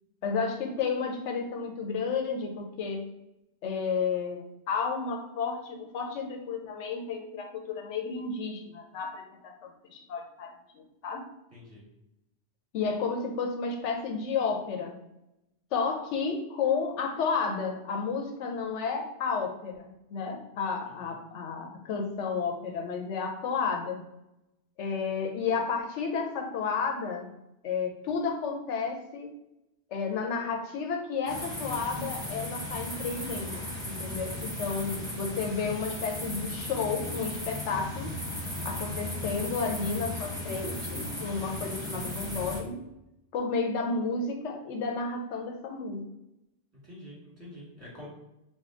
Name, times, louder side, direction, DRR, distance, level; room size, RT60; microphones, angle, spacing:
voice 1, 0.2-3.0 3.6-11.3 12.7-15.0 15.7-24.0 24.8-27.3 27.6-29.3 29.9-38.1 38.6-42.8 43.3-46.0, left 5 dB, 90° left, 3 dB, 0.9 m, -32 dB
voice 2, 11.5-11.8 20.8-21.2 34.7-35.0 46.7-48.1, left 1 dB, 15° right, -6 dB, 1.3 m, -47 dB
sound 1, 31.3-42.6, left 1 dB, 5° left, 0.8 m, -36 dB
3.6 x 2.3 x 3.6 m, 0.89 s
omnidirectional pair, 1.2 m